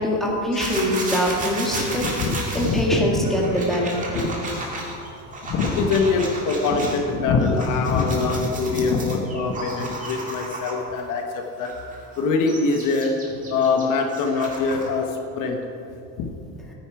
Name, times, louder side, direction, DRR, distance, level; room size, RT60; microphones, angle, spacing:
voice 1, 0.0-2.0 2.5-4.3, equal, ahead, -3 dB, 1.7 m, -23 dB
sound 1, 0.6-7.0 7.4-11.0 11.6-15.0, right 2 dB, 20° right, 1.7 m, -33 dB
voice 2, 2.0-2.8 4.1-4.8 5.4-11.8 12.2-15.6 16.2-16.3, left 4 dB, 50° left, 3 dB, 1.1 m, -23 dB
14.5 x 9.4 x 4.8 m, 2.8 s
cardioid pair, 155°, 41 cm